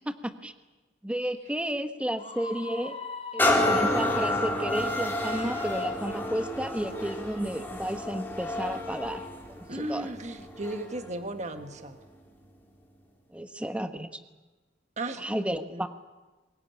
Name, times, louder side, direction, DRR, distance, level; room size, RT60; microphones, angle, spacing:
voice 1, 0.0-0.5 1.0-3.0 3.3-10.1 13.3-14.1 15.2-15.9, equal, 5° right, 8 dB, 1.3 m, -32 dB
Screaming, 2.2-5.1, left 4 dB, 35° left, 4.2 m, -41 dB
sound 1, 3.4-11.0 11.6-11.7, left 1 dB, 10° left, 3.7 m, -29 dB
voice 2, 9.7-12.0 15.0-15.2 15.7-15.9, right 2 dB, 40° right, 7 dB, 1.4 m, -35 dB
23.5 x 20.0 x 9.9 m, 1.2 s
head